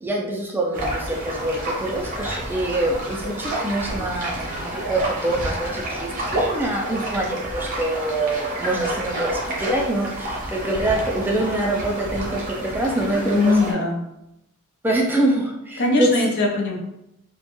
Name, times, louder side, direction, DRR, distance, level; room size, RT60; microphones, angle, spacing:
voice 1, 0.0-13.5 14.8-16.1, right 1 dB, 10° right, 0 dB, 0.3 m, -25 dB
sound 1, 0.7-13.7, right 1 dB, 40° right, 0.7 m, -29 dB
voice 2, 13.1-14.0 15.8-16.8, left 2 dB, 50° left, 1 dB, 0.5 m, -21 dB
2.4 x 2.1 x 2.9 m, 0.84 s
head